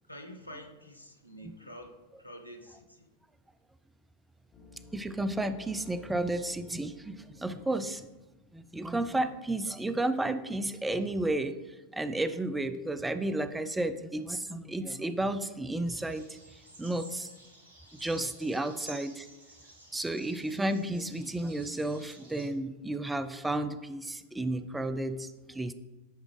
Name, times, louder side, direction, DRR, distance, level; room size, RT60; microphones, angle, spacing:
voice 1, 0.1-3.1 18.6-18.7, equal, 85° left, 4 dB, 0.8 m, -48 dB
sound 1, 4.5-8.5, left 3 dB, 25° left, 1.1 m, -53 dB
voice 2, 4.9-8.1 8.5-16.4 16.8-17.3 17.9-19.3 19.9-25.7, right 1 dB, 10° right, 11 dB, 0.4 m, -32 dB
sound 2, 15.8-22.5, right 1 dB, 65° right, 2.0 m, -53 dB
10.0 x 4.9 x 3.2 m, 1.1 s
figure-of-eight pair, 90°, 0 cm